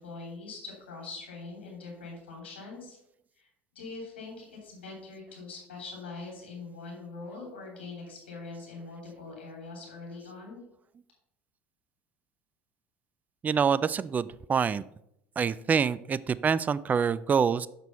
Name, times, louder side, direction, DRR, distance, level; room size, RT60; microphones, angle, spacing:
voice 1, 0.0-3.0 3.4-3.5 3.7-10.6, left 3 dB, 90° left, -1 dB, 3.1 m, -43 dB
voice 2, 13.4-14.8 15.4-17.7, right 6 dB, 30° right, 18 dB, 0.4 m, -26 dB
6.7 x 6.2 x 5.4 m, 0.79 s
hypercardioid pair, 75°, 6 cm